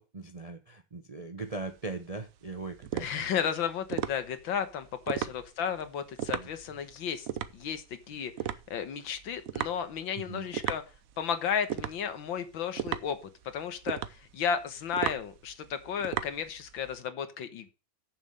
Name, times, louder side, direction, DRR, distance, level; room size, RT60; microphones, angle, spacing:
voice 1, 0.0-3.3 6.3-6.5 10.1-10.5, right 3 dB, 40° right, 7 dB, 0.5 m, -40 dB
sound 1, 1.4-17.0, right 10 dB, 60° right, 0.9 m, -37 dB
voice 2, 3.0-7.3 7.5-8.3 8.7-10.8 11.2-13.2 13.5-17.7, left 7 dB, 75° left, 10 dB, 1.9 m, -33 dB
7.3 x 7.1 x 6.6 m, 0.31 s
omnidirectional pair, 2.1 m